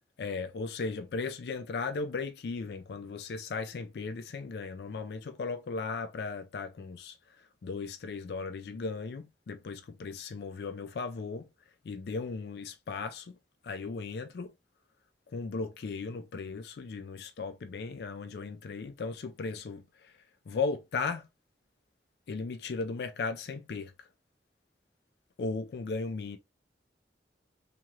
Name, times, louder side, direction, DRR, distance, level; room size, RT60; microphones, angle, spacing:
voice 1, 0.2-7.2 7.6-11.5 11.8-13.3 13.6-14.5 15.3-20.1 20.5-21.3 22.3-24.1 25.4-26.4, left 4 dB, 65° left, 0.4 m, -36 dB
2.8 x 2.4 x 2.9 m
head